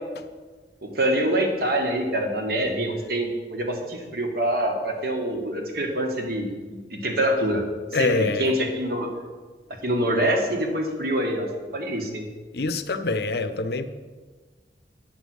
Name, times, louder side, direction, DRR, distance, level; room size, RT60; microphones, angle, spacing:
voice 1, 0.8-7.6 8.0-9.1 9.8-11.5 11.7-12.3, right 1 dB, 55° right, 3 dB, 1.5 m, -25 dB
voice 2, 7.9-8.5 12.5-13.9, left 3 dB, 60° left, 10 dB, 0.6 m, -25 dB
9.0 x 5.3 x 7.8 m, 1.4 s
head